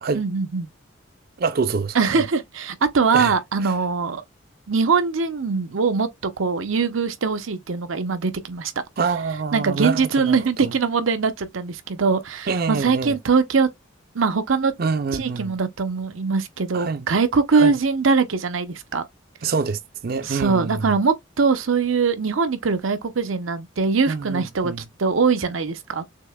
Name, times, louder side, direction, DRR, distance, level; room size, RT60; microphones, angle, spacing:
voice 1, 0.1-0.7 1.9-4.2 4.7-8.7 9.5-13.7 14.1-14.7 15.1-19.0 20.2-24.7 25.0-26.0, right 4 dB, 80° right, 0.7 m, -22 dB
voice 2, 1.4-2.2 3.1-3.3 9.0-10.7 12.5-13.2 14.8-15.5 16.7-17.1 17.5-17.7 19.4-20.9 24.1-24.8, right 4 dB, 50° right, 0.4 m, -26 dB
6.6 x 2.8 x 2.3 m
head